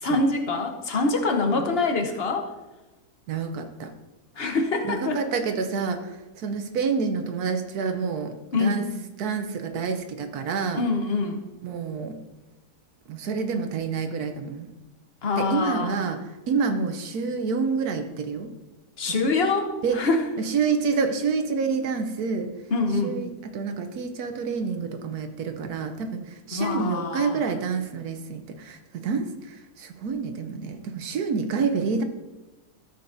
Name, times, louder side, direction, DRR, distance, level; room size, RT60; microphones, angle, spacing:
voice 1, 0.0-2.5 4.4-5.2 8.5-8.9 10.7-11.4 15.2-16.0 19.0-20.3 22.7-23.1 26.5-27.4, left 3 dB, 45° left, 4 dB, 1.0 m, -25 dB
voice 2, 3.3-3.9 4.8-6.1 6.4-8.3 8.6-8.8 9.2-10.8 11.6-12.2 13.1-14.7 15.4-16.2 16.5-18.5 19.2-19.3 19.8-20.0 20.4-22.5 23.0-26.2 26.5-32.0, right 5 dB, 75° right, 6 dB, 1.2 m, -28 dB
13.0 x 6.9 x 2.6 m, 1.1 s
omnidirectional pair, 1.7 m